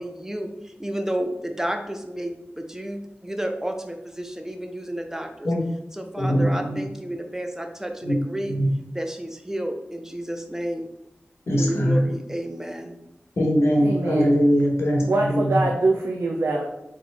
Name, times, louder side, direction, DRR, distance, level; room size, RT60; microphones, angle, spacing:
voice 1, 0.0-5.5 5.9-8.5 8.9-10.9 11.6-13.0, right 1 dB, 10° right, 5 dB, 0.5 m, -31 dB
voice 2, 6.2-6.8 8.0-8.2 8.5-8.7 11.5-12.0 13.4-15.7, equal, 80° left, -1 dB, 1.0 m, -21 dB
voice 3, 13.8-14.3 15.1-16.6, right 2 dB, 75° right, 0 dB, 0.5 m, -23 dB
4.1 x 3.1 x 3.4 m, 0.90 s
wide cardioid pair, 60°, 4 cm